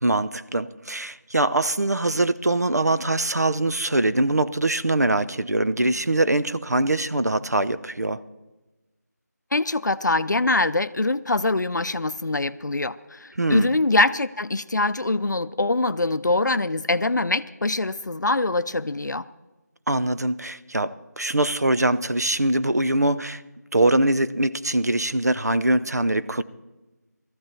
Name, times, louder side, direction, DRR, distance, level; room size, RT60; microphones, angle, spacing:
voice 1, 0.0-8.2 13.4-13.7 19.9-23.4 23.7-26.4, right 2 dB, 65° right, 0.7 m, -23 dB
voice 2, 9.5-19.2, left 2 dB, 80° left, 0.6 m, -23 dB
18.5 x 14.0 x 4.4 m
figure-of-eight pair, 180°, 10 cm